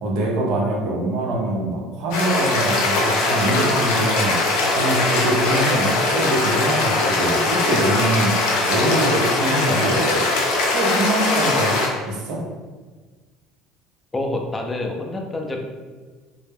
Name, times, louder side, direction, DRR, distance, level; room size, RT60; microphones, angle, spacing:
voice 1, 0.0-4.4 4.7-8.3 8.7-10.2 10.7-11.7 12.1-12.4, right 1 dB, 70° right, -1 dB, 0.6 m, -23 dB
sound 1, 2.1-11.9, left 2 dB, 80° left, 0.5 m, -21 dB
voice 2, 14.1-15.7, left 2 dB, 15° left, 1 dB, 0.4 m, -27 dB
2.1 x 2.0 x 3.2 m, 1.4 s
supercardioid pair, 110°, 0 cm